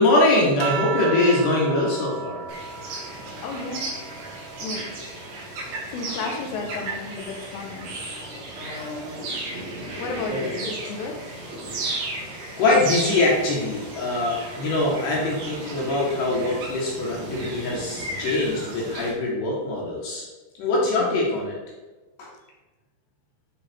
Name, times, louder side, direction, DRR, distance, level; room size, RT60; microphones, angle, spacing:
voice 1, 0.0-2.5 10.3-10.6 11.9-12.1 12.6-20.2 20.6-21.6 22.2-22.3, left 2 dB, 65° left, -4 dB, 3.1 m, -23 dB
sound 1, 0.6-5.4 5.9-7.6 8.8-9.3, right 7 dB, 85° right, 2.6 m, -36 dB
sound 2, 2.5-19.1, right 2 dB, 65° right, 4.3 m, -34 dB
voice 2, 3.4-4.0 4.6-4.9 5.3-5.6 5.9-8.0 10.0-11.3 21.0-21.3, left 3 dB, 80° left, 2 dB, 3.4 m, -33 dB
11.5 x 4.2 x 4.5 m, 1.2 s
omnidirectional pair, 6.0 m